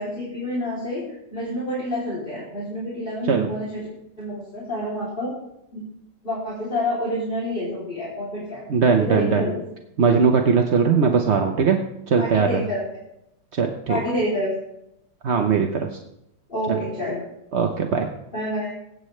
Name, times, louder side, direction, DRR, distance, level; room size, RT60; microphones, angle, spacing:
voice 1, 0.0-3.8 4.2-5.3 5.7-5.8 6.2-8.6 9.0-9.6 12.1-12.8 13.9-14.5 16.5-17.2 18.3-18.7, equal, 25° left, -7 dB, 3.3 m, -28 dB
voice 2, 8.7-9.5 10.0-11.8 12.1-12.6 13.5-14.0 15.2-16.0 16.7-16.8 17.5-18.1, right 5 dB, 55° right, 3 dB, 0.8 m, -20 dB
21.5 x 8.9 x 3.2 m, 0.82 s
omnidirectional pair, 2.2 m